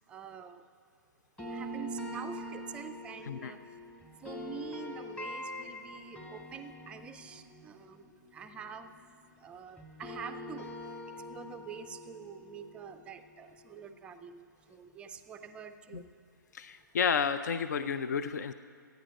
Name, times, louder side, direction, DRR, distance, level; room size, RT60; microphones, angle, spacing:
voice 1, 0.1-0.6 1.5-3.8 4.2-9.0 9.4-16.1, right 6 dB, 10° right, 8 dB, 0.4 m, -46 dB
sound 1, 1.4-9.5 9.8-14.7, equal, 10° left, 1.1 m, -45 dB
voice 2, 16.5-18.5, left 6 dB, 55° left, 11 dB, 0.4 m, -31 dB
13.0 x 9.3 x 5.0 m, 2.1 s
figure-of-eight pair, 130°, 11 cm